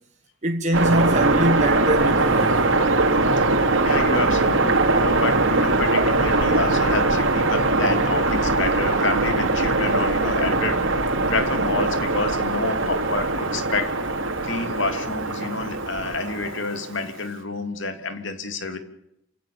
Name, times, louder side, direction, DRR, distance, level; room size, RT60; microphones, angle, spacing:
voice 1, 0.4-2.6, right 1 dB, 40° right, 1.3 m, -22 dB
sound 1, 0.7-17.1, right 2 dB, 80° right, 3.0 m, -21 dB
voice 2, 3.3-10.9 11.3-14.0 14.4-18.8, left 3 dB, 70° left, 3.0 m, -28 dB
28.5 x 16.5 x 8.7 m
head